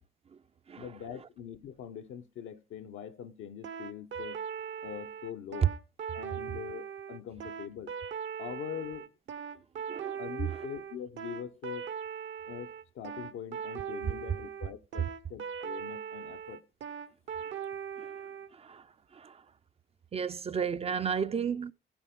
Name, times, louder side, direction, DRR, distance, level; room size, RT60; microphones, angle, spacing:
voice 1, 0.8-4.4 4.8-5.7 6.1-7.9 8.4-9.1 10.2-11.9 12.5-16.6, left 9 dB, 80° left, 0.9 m, -43 dB
sound 1, 3.6-18.5, right 7 dB, 70° right, 0.9 m, -40 dB
voice 2, 9.9-10.2 18.0-18.9 19.1-19.4 20.1-21.7, right 7 dB, 30° right, 0.4 m, -32 dB
15.5 x 7.2 x 3.7 m
cardioid pair, 90°, 20 cm